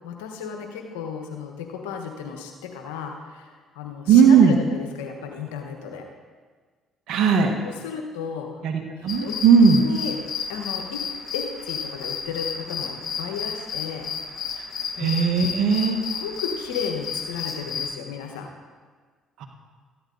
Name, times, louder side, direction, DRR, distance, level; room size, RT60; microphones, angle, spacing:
voice 1, 0.0-6.1 7.4-8.6 9.0-9.4 9.8-10.1 10.5-11.1 11.3-14.1 14.9-15.2 16.0-18.5, left 6 dB, 85° left, 4 dB, 1.2 m, -34 dB
voice 2, 4.1-4.6 7.1-7.5 8.6-9.8 15.0-16.0, right 6 dB, 65° right, 2 dB, 1.3 m, -17 dB
sound 1, 9.1-18.0, left 6 dB, 55° left, 1.2 m, -32 dB
14.0 x 10.5 x 4.0 m, 1.5 s
hypercardioid pair, 60°, 0 cm